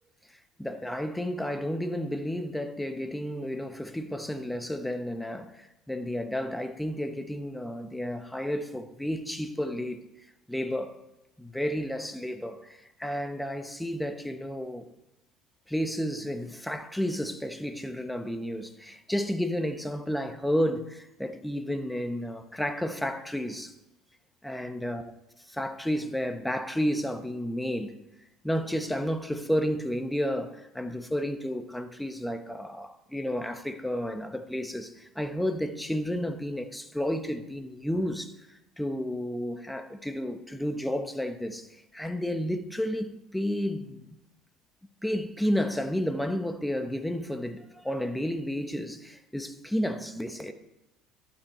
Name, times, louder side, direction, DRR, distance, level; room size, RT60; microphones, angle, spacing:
voice 1, 0.6-10.0 10.5-11.0 11.4-14.9 15.7-23.7 24.4-25.1 25.5-28.0 28.4-44.2 45.0-50.5, equal, 5° left, 1.0 m, -31 dB
12.0 x 8.7 x 4.3 m
supercardioid pair, 95°, 0 cm